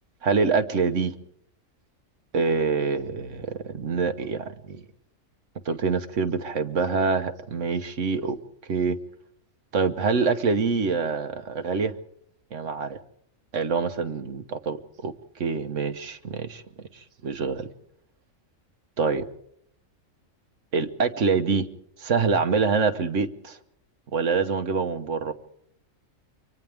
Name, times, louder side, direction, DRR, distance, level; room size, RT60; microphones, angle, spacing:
voice 1, 0.2-1.2 2.3-4.8 5.6-8.4 8.7-9.0 9.7-11.9 12.5-13.0 13.5-15.1 15.4-16.6 16.9-17.7 19.0-19.2 20.7-21.7 22.0-23.6 24.1-25.3, right 5 dB, 65° right, 9 dB, 1.5 m, -25 dB
29.5 x 24.5 x 3.5 m, 0.71 s
omnidirectional pair, 1.4 m